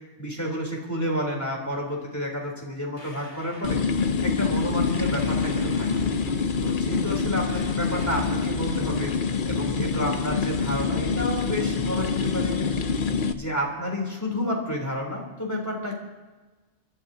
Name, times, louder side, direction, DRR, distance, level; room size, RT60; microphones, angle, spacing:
voice 1, 0.2-3.8 4.2-6.0 6.6-9.1 9.5-12.6 13.3-15.9, equal, 15° left, -1 dB, 3.5 m, -30 dB
sound 1, 3.0-3.9 4.9-6.5 7.5-8.5, left 1 dB, 30° left, 2.1 m, -47 dB
sound 2, 3.6-13.3, left 5 dB, 50° left, 0.9 m, -26 dB
29.5 x 13.0 x 2.8 m, 1.2 s
omnidirectional pair, 1.2 m